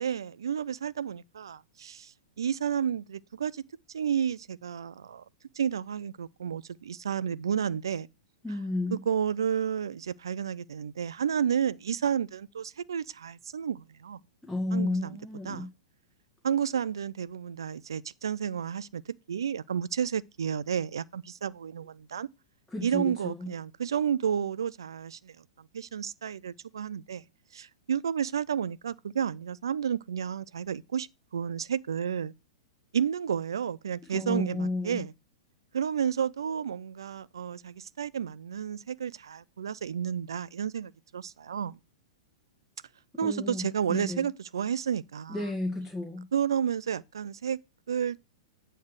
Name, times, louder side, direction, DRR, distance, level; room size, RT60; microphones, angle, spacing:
voice 1, 0.0-3.6 3.9-5.2 5.6-8.1 8.9-14.2 14.7-15.1 15.5-15.7 16.4-19.0 19.3-22.3 22.8-25.4 25.7-27.2 27.5-31.1 31.3-32.3 32.9-35.1 35.7-41.8 43.2-45.4 46.3-47.6 47.9-48.2, right 8 dB, 65° right, 0.5 m, -31 dB
voice 2, 8.4-9.0 14.4-15.7 22.7-23.5 34.1-35.1 43.2-44.3 45.3-46.3, left 2 dB, 5° left, 1.9 m, -32 dB
9.3 x 3.3 x 6.4 m
figure-of-eight pair, 105°, 2 cm